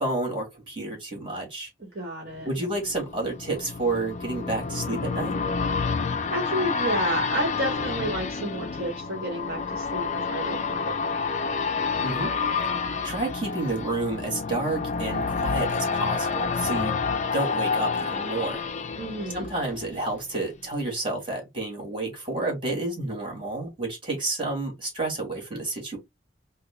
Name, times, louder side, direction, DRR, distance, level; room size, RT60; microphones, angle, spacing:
voice 1, 0.0-1.7 2.4-5.4 12.0-12.3 13.0-17.0 17.3-18.6 19.3-26.0, right 2 dB, 25° right, 1.7 m, -30 dB
voice 2, 1.8-2.5 6.3-11.2 19.0-19.5, right 1 dB, 55° right, 1.2 m, -31 dB
sound 1, 2.4-20.2 20.6-20.7, left 5 dB, 40° left, 0.3 m, -29 dB
3.6 x 2.1 x 3.4 m
head